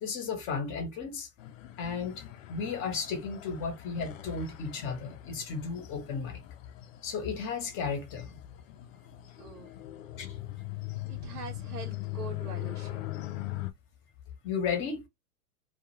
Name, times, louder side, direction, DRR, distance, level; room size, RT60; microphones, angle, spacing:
voice 1, 0.0-1.3 1.8-2.2 2.5-6.4 7.0-8.4 10.2-10.3 14.4-15.0, left 5 dB, 25° left, 1.0 m, -34 dB
sound 1, 1.4-13.7, left 16 dB, 60° left, 0.6 m, -41 dB
voice 2, 9.4-9.7 11.1-13.1, right 6 dB, 80° right, 1.0 m, -44 dB
2.4 x 2.3 x 2.9 m
hypercardioid pair, 135°, 45 cm